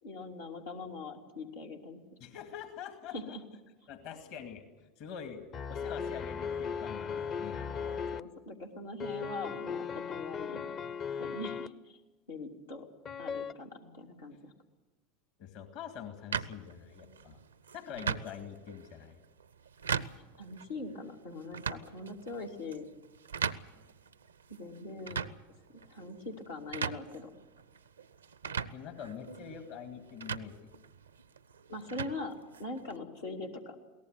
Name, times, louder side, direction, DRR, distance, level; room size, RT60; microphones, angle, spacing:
voice 1, 0.0-2.0 3.1-3.4 7.8-10.6 11.2-12.0 12.3-12.9 13.2-14.5 20.2-22.9 24.5-25.2 25.9-27.3 31.7-33.8, left 2 dB, 85° left, -1 dB, 2.6 m, -42 dB
voice 2, 2.2-3.4 3.9-5.4 5.7-7.7 15.4-17.4 17.7-19.2 25.1-25.2 28.7-30.5, left 8 dB, 60° left, 6 dB, 2.3 m, -45 dB
sound 1, 5.5-8.2 9.0-11.7 13.0-13.5, left 6 dB, 40° left, 0.8 m, -37 dB
sound 2, 16.3-33.0, right 6 dB, 90° right, 0.6 m, -40 dB
22.5 x 18.0 x 8.1 m, 1.2 s
hypercardioid pair, 80°, 0 cm